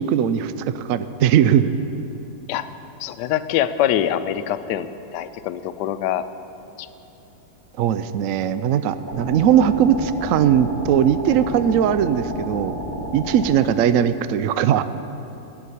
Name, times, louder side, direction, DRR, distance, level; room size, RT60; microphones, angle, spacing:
voice 1, 0.0-1.7 7.8-12.8 13.1-14.8, right 9 dB, 80° right, 13 dB, 0.7 m, -19 dB
voice 2, 3.0-4.9 5.1-6.2 6.8-6.9, left 11 dB, 75° left, 12 dB, 1.2 m, -24 dB
sound 1, 9.1-13.5, equal, 10° right, 2.8 m, -31 dB
12.5 x 8.3 x 9.9 m, 2.9 s
omnidirectional pair, 1.9 m